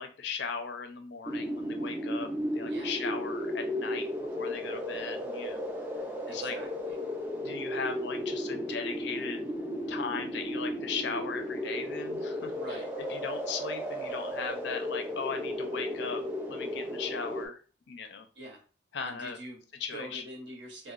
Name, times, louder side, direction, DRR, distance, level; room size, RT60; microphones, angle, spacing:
voice 1, 0.0-4.1 4.4-5.6 6.3-6.6 7.4-9.5 9.9-12.8 13.1-16.2 16.5-17.6 17.9-18.3 18.9-19.4 19.8-20.2, left 5 dB, 60° left, 6 dB, 0.4 m, -38 dB
sound 1, 1.3-17.5, equal, 10° right, 0.4 m, -35 dB
voice 2, 6.3-7.0 12.5-12.9 18.3-18.6 19.0-19.6 19.9-20.9, right 1 dB, 70° right, 1 dB, 0.8 m, -44 dB
2.9 x 2.1 x 2.3 m, 0.36 s
head